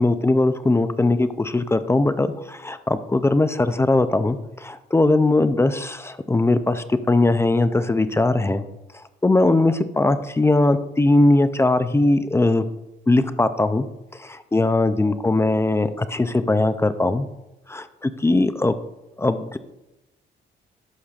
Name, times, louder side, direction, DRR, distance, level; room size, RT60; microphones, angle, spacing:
voice 1, 0.0-8.6 8.9-12.6 13.1-13.9 14.2-17.3 17.7-18.8 19.2-19.6, left 2 dB, 15° left, 11 dB, 0.4 m, -20 dB
11.5 x 5.5 x 2.4 m, 0.95 s
cardioid pair, 90°, 20 cm